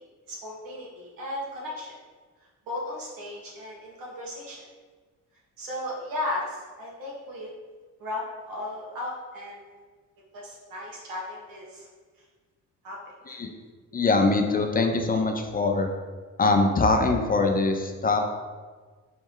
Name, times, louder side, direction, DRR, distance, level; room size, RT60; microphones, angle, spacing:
voice 1, 0.3-1.9 2.7-4.6 5.6-7.5 8.0-9.6 10.3-11.9 12.8-13.0 13.3-13.4, left 1 dB, 85° right, -4 dB, 1.4 m, -35 dB
voice 2, 13.9-15.9 16.4-18.2, left 3 dB, 25° left, 4 dB, 0.5 m, -23 dB
4.2 x 3.2 x 3.6 m, 1.4 s
cardioid pair, 80°, 33 cm